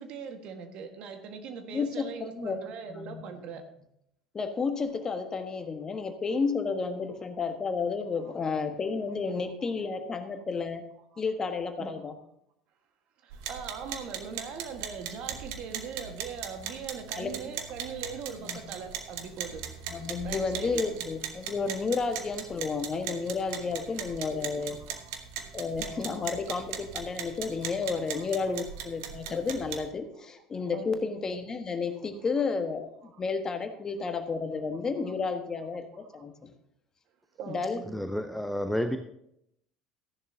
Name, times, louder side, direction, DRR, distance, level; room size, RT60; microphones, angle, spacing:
voice 1, 0.0-3.6 8.2-8.4 11.1-11.2 11.8-11.9 13.2-19.6 20.2-20.8 26.1-26.2 27.8-28.6 30.7-30.9 36.0-36.1 37.4-38.0 38.8-39.0, right 6 dB, 50° right, 6 dB, 1.6 m, -41 dB
voice 2, 1.7-2.6 2.9-3.2 4.3-10.8 11.2-12.1 17.2-17.5 18.4-18.6 19.9-24.8 25.5-36.5 37.5-37.8, left 4 dB, 30° left, 7 dB, 1.3 m, -32 dB
sound 1, 13.3-29.9, right 8 dB, 70° right, 1.2 m, -39 dB
voice 3, 37.9-39.0, equal, 5° left, 7 dB, 0.7 m, -30 dB
14.5 x 10.5 x 2.8 m, 0.75 s
figure-of-eight pair, 70°, 2 cm